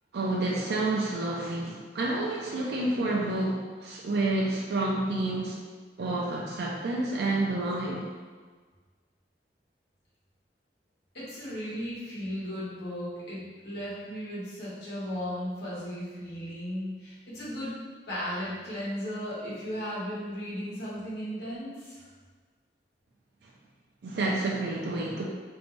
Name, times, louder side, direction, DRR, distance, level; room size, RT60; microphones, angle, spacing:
voice 1, 0.1-5.6 6.0-8.0 24.0-25.3, right 2 dB, 65° right, -3 dB, 0.3 m, -29 dB
voice 2, 11.1-17.8 18.1-22.1, equal, 70° left, -9 dB, 1.0 m, -36 dB
2.6 x 2.1 x 3.0 m, 1.5 s
head